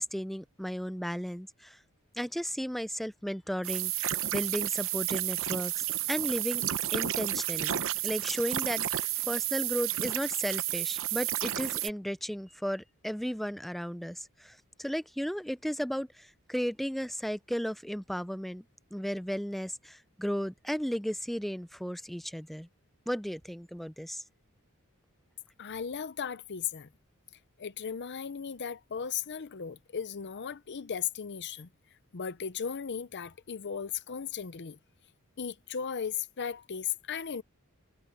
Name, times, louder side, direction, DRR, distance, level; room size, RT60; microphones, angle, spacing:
voice 1, 0.0-1.8 2.2-6.7 6.9-7.8 8.0-18.6 18.9-22.7 23.1-24.2, equal, ahead, 0.4 m, -35 dB
sound 1, 3.6-11.9, right 12 dB, 65° right, 0.9 m, -31 dB
voice 2, 25.6-26.9 27.6-31.7 32.1-34.8 35.4-37.4, left 7 dB, 55° left, 0.7 m, -36 dB
head